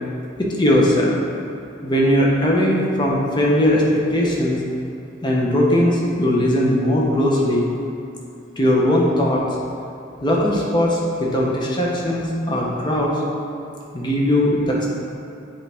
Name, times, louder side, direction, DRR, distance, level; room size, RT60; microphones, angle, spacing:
voice 1, 0.4-1.2 1.8-4.6 5.2-7.7 8.6-9.5 10.2-13.2 13.9-14.9, left 1 dB, 25° left, -3 dB, 0.8 m, -19 dB
7.4 x 4.4 x 3.5 m, 2.7 s
head